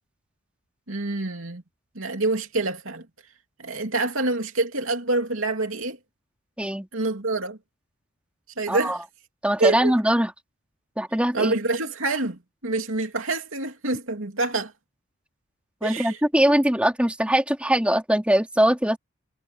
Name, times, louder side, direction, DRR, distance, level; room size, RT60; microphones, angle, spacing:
voice 1, 0.9-1.6 1.9-3.1 3.6-6.0 6.9-7.6 8.6-9.0 9.6-9.9 11.3-14.7 15.8-16.2, right 2 dB, 70° right, 3.0 m, -26 dB
voice 2, 8.7-9.0 9.4-10.3 11.0-11.5 15.8-19.0, right 1 dB, 5° right, 3.1 m, -21 dB
head